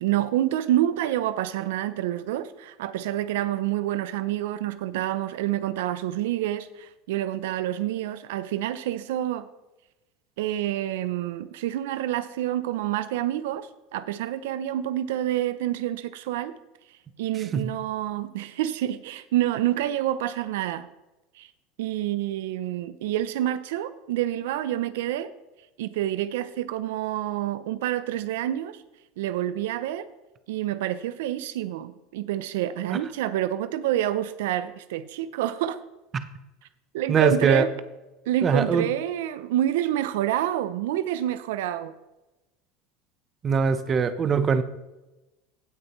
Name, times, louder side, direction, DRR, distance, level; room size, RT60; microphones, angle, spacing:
voice 1, 0.0-9.5 10.4-16.6 17.2-20.9 21.3-21.5 21.8-25.3 25.8-28.8 29.2-30.1 30.5-35.8 36.9-37.7 38.3-41.9, right 12 dB, 85° right, 13 dB, 0.5 m, -28 dB
voice 2, 37.1-37.6 38.4-38.9 43.4-44.6, right 6 dB, 30° right, 11 dB, 0.8 m, -22 dB
16.5 x 6.5 x 3.1 m, 1.0 s
supercardioid pair, 120°, 0 cm